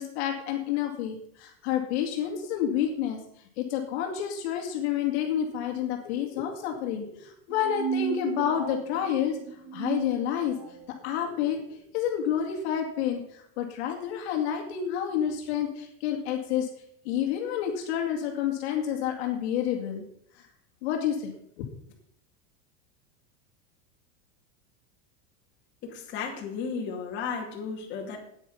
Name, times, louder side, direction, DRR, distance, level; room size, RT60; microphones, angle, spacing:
voice 1, 0.0-3.2 3.6-9.4 9.7-10.6 11.0-16.7 17.1-20.0 20.4-20.5 20.8-21.3 21.6-21.7, left 9 dB, 60° left, 2 dB, 2.1 m, -29 dB
sound 1, 7.5-10.9, right 7 dB, 30° right, 1.7 m, -35 dB
voice 2, 25.8-28.2, left 5 dB, 30° left, -1 dB, 2.5 m, -34 dB
9.4 x 9.2 x 5.7 m, 0.72 s
supercardioid pair, 175°, 36 cm